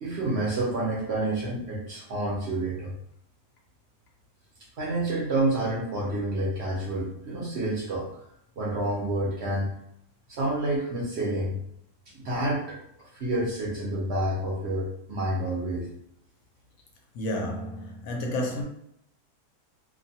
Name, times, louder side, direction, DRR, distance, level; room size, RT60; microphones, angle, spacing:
voice 1, 0.0-2.9 4.8-8.1 8.6-9.8 10.3-11.6 12.1-15.9, right 1 dB, 55° right, 0.8 m, -29 dB
voice 2, 17.1-18.6, left 1 dB, 65° left, 1.0 m, -31 dB
2.7 x 2.2 x 2.7 m
omnidirectional pair, 1.7 m